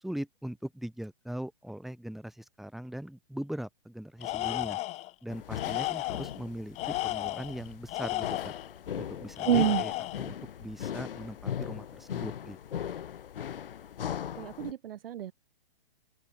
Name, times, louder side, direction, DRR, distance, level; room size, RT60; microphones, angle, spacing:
voice 1, 0.0-4.8 5.2-8.5 9.0-12.6, right 1 dB, ahead, 2.8 m, -40 dB
Tools, 4.2-5.1 5.6-6.4 6.8-8.7 9.4-10.3, left 18 dB, 20° left, 3.0 m, -33 dB
sound 1, 5.3-14.7, left 9 dB, 65° left, 3.6 m, -39 dB
voice 2, 9.5-9.8 14.4-15.3, right 11 dB, 70° right, 0.7 m, -28 dB
hypercardioid pair, 155°, 30 cm